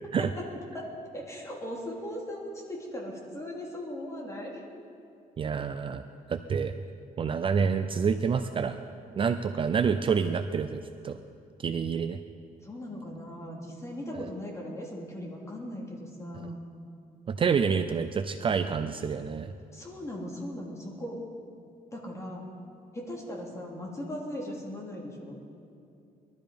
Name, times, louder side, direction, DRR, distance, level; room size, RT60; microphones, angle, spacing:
voice 1, 0.7-4.6 12.6-16.6 19.7-21.2 21.9-22.5 22.9-25.4, left 1 dB, 20° left, -2 dB, 3.0 m, -38 dB
voice 2, 5.4-6.0 6.3-6.7 7.2-8.8 9.2-11.2 11.6-12.2 14.1-14.3 17.3-19.5, right 6 dB, 35° right, 9 dB, 0.5 m, -28 dB
20.5 x 12.5 x 5.2 m, 2.6 s
cardioid pair, 140°, 15 cm